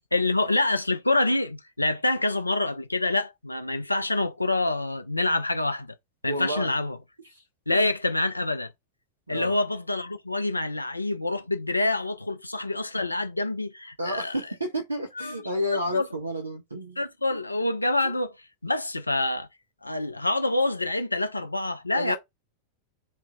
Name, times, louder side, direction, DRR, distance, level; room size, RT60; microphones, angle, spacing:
voice 1, 0.1-5.9 6.2-7.0 7.7-8.7 9.3-14.4 15.2-15.4 15.9-16.0 17.0-18.3 18.6-19.5 19.8-22.2, left 2 dB, 85° left, 0.3 m, -26 dB
voice 2, 6.3-6.7 7.3-7.4 9.3-9.6 14.0-17.0 17.3-17.4 21.9-22.2, equal, 80° right, 0.6 m, -31 dB
3.0 x 2.4 x 3.4 m
figure-of-eight pair, 90°, 0 cm